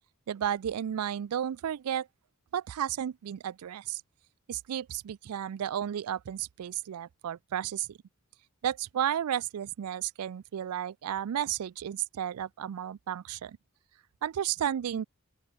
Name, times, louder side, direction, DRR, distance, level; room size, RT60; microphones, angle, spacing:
voice 1, 0.3-2.1 2.5-4.0 4.5-8.0 8.6-13.6 14.2-15.0, right 10 dB, 90° right, 0.4 m, -33 dB
open air
head